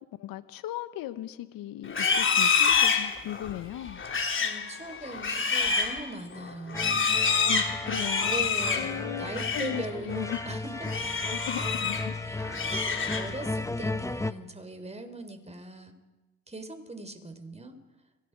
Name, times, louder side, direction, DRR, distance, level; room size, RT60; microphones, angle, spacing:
voice 1, 0.2-4.0 7.5-8.5 8.7-10.4 11.3-12.2 13.1-13.3, left 13 dB, 60° left, 12 dB, 1.8 m, -37 dB
Livestock farm animals working animals, 1.9-9.8 10.1-10.4 10.8-12.1 12.4-13.5, left 5 dB, 30° left, 3.8 m, -27 dB
voice 2, 4.4-7.1 7.7-10.9 12.2-12.7 13.0-15.9 16.5-17.8, right 2 dB, 15° right, 8 dB, 4.7 m, -40 dB
sound 1, 6.7-14.3, left 2 dB, 10° left, 1.4 m, -35 dB
30.0 x 25.0 x 5.1 m, 1.2 s
hypercardioid pair, 60°, 39 cm